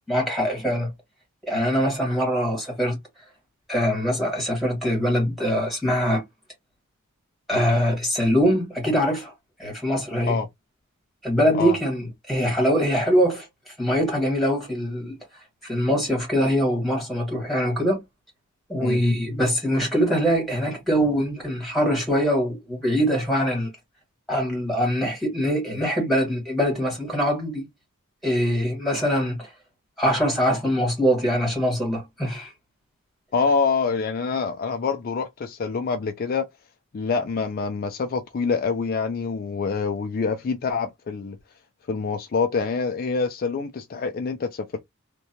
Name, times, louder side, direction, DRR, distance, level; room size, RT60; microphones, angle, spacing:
voice 1, 0.1-0.9 1.5-3.0 3.7-6.2 7.5-9.3 9.6-10.4 11.2-15.2 15.6-18.0 18.7-23.7 24.3-27.7 28.2-29.5 30.0-32.5, equal, ahead, 1.6 m, -23 dB
voice 2, 33.3-36.5 36.9-41.4 41.9-44.8, left 5 dB, 45° left, 0.3 m, -26 dB
2.7 x 2.2 x 2.7 m
head